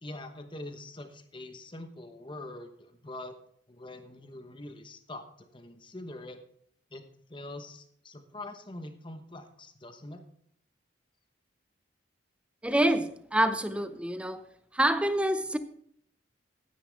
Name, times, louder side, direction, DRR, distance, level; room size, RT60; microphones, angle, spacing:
voice 1, 0.0-3.4 3.7-6.4 6.9-10.2, left 2 dB, 25° left, 7 dB, 1.0 m, -44 dB
voice 2, 12.6-14.4 14.7-15.6, right 1 dB, 5° right, 11 dB, 0.5 m, -26 dB
13.0 x 9.6 x 3.5 m, 0.67 s
head